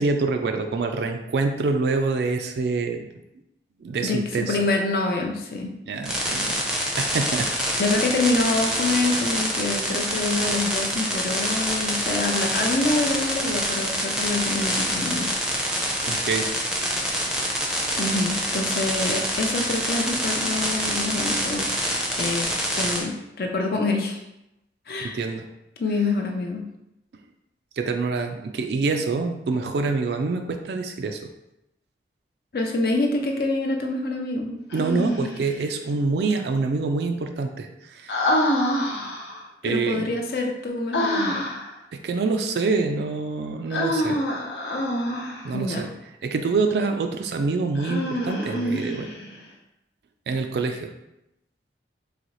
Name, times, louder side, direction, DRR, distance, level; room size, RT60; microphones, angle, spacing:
voice 1, 0.0-3.0 3.8-4.6 5.9-6.6 7.0-7.5 16.1-16.5 25.0-25.5 27.8-31.2 34.7-38.3 39.6-40.1 41.9-44.2 45.4-45.9 46.2-49.1 50.3-50.9, right 4 dB, 70° right, 5 dB, 0.3 m, -26 dB
voice 2, 4.0-5.7 7.8-15.3 18.0-21.7 22.1-22.5 22.8-24.2 24.9-25.2 25.8-26.6 32.5-34.6 39.6-41.4 45.5-45.9, left 2 dB, 55° left, 2 dB, 0.4 m, -26 dB
sound 1, 6.0-23.0, equal, 5° right, 0.5 m, -26 dB
Human voice, 34.7-35.6 38.1-39.4 40.9-41.7 43.7-45.5 47.8-49.4, left 1 dB, 90° left, 0.9 m, -26 dB
4.0 x 2.8 x 3.0 m, 0.87 s
head